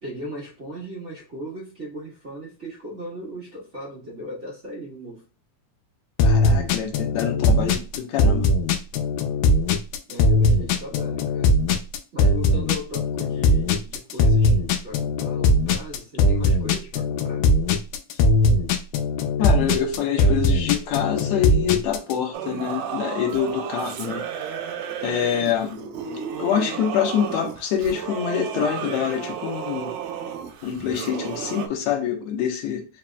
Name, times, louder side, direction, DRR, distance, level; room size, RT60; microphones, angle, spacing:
voice 1, 0.0-5.2 10.1-11.6 12.1-14.6 14.8-17.5, equal, 40° right, 1.0 m, -37 dB
sound 1, 6.2-22.1, left 2 dB, 90° left, 2.2 m, -20 dB
voice 2, 6.2-8.5 19.4-24.3 25.0-25.8 26.4-29.9 30.6-32.9, left 8 dB, 70° left, 2.0 m, -25 dB
Singing / Musical instrument, 22.3-31.7, right 8 dB, 90° right, 2.1 m, -33 dB
5.0 x 2.9 x 2.2 m
omnidirectional pair, 3.6 m